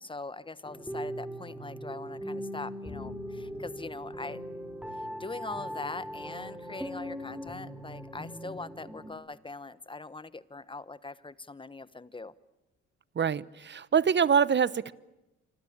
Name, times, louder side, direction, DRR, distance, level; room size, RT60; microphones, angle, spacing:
voice 1, 0.0-4.4 4.9-12.3, left 3 dB, 15° left, 17 dB, 1.1 m, -42 dB
sound 1, 0.6-9.1, equal, 5° right, 4.4 m, -40 dB
voice 2, 13.2-14.9, right 7 dB, 35° right, 20 dB, 0.9 m, -25 dB
26.0 x 25.5 x 8.8 m, 0.98 s
cardioid pair, 90°, 30 cm